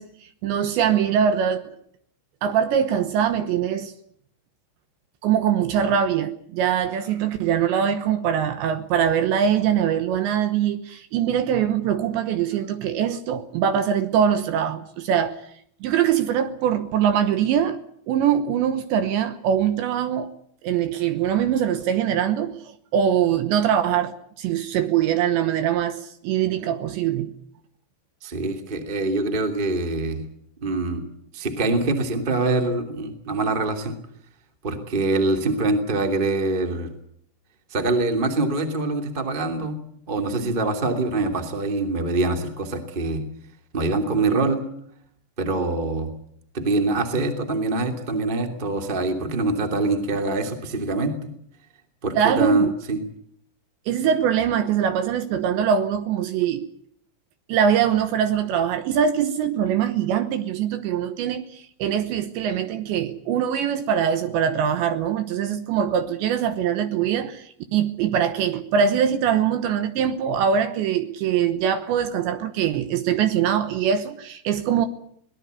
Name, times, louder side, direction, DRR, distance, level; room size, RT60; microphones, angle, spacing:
voice 1, 0.0-1.8 2.4-3.9 5.2-15.4 15.8-17.8 18.1-20.3 20.6-27.3 40.3-40.5 52.1-52.7 53.9-56.7 57.5-74.9, right 8 dB, 75° right, 3.0 m, -23 dB
voice 2, 28.2-30.2 30.6-31.0 31.3-33.9 34.6-36.9 37.7-39.8 40.1-43.2 43.7-44.6 45.4-46.1 46.5-51.3 52.0-53.0, right 2 dB, 20° right, 1.5 m, -24 dB
23.5 x 19.0 x 8.2 m
omnidirectional pair, 5.9 m